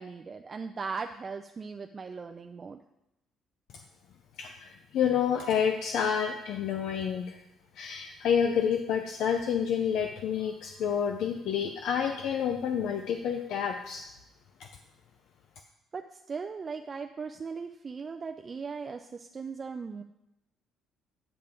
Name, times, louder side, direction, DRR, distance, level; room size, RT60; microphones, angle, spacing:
voice 1, 0.0-2.8 15.9-20.0, right 5 dB, 35° right, 6 dB, 0.4 m, -38 dB
voice 2, 4.4-7.4 7.8-14.0, left 7 dB, 75° left, 5 dB, 0.6 m, -29 dB
8.8 x 5.8 x 5.1 m, 0.87 s
cardioid pair, 95°, 0 cm